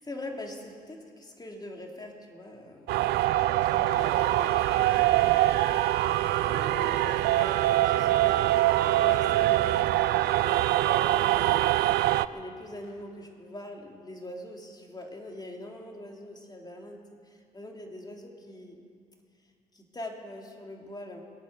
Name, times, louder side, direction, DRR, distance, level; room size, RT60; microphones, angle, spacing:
voice 1, 0.0-5.5 6.3-18.8 19.7-21.2, left 1 dB, 25° left, 1 dB, 3.3 m, -43 dB
sound 1, 2.9-12.3, right 15 dB, 85° right, 0.4 m, -24 dB
Applause, 3.1-12.0 12.8-13.2, left 5 dB, 85° left, 1.5 m, -50 dB
23.5 x 8.9 x 6.8 m, 2.2 s
supercardioid pair, 60°, 17 cm